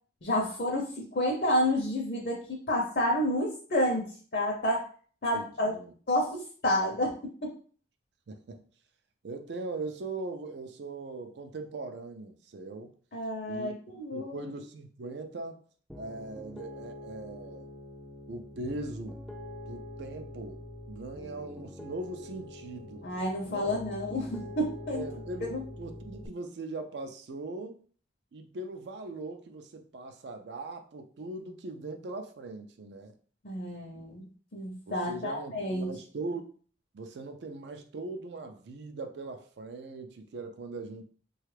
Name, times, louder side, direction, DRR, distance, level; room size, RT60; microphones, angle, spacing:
voice 1, 0.2-4.9 5.2-5.8 6.1-7.1 13.1-14.5 23.0-25.0 25.5-25.6 33.4-34.2 34.5-35.9, left 1 dB, 55° left, -2 dB, 0.6 m, -30 dB
voice 2, 5.3-5.9 8.3-8.6 9.2-12.9 13.5-13.7 14.1-15.6 16.0-17.7 18.3-19.2 19.7-20.6 20.9-23.1 23.5-23.7 24.9-27.8 28.3-33.1 33.9-34.1 34.9-36.5 36.9-41.0, right 2 dB, 75° right, 6 dB, 0.4 m, -40 dB
Piano, 15.9-26.3, left 1 dB, ahead, 0.3 m, -44 dB
3.1 x 2.3 x 3.2 m, 0.43 s
head